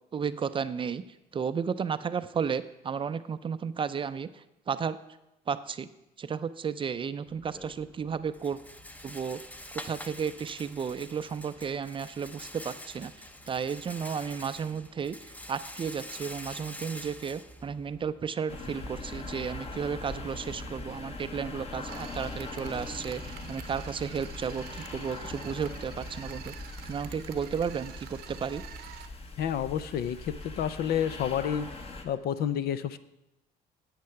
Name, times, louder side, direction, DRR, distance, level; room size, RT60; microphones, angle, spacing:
voice 1, 0.1-1.0 1.3-5.0 5.5-5.9 6.2-8.6 9.0-9.4 9.8-26.5 26.9-28.6, right 6 dB, 30° right, 13 dB, 0.5 m, -33 dB
Rattle, 7.3-18.3, left 1 dB, 10° left, 0.7 m, -46 dB
sound 1, 18.5-32.0, left 2 dB, 35° left, 1.3 m, -41 dB
sound 2, 21.9-29.1, right 11 dB, 75° right, 0.8 m, -48 dB
voice 2, 29.4-31.7 32.0-33.0, left 9 dB, 65° left, 13 dB, 0.6 m, -29 dB
9.5 x 8.3 x 5.8 m, 0.92 s
cardioid pair, 110°, 17 cm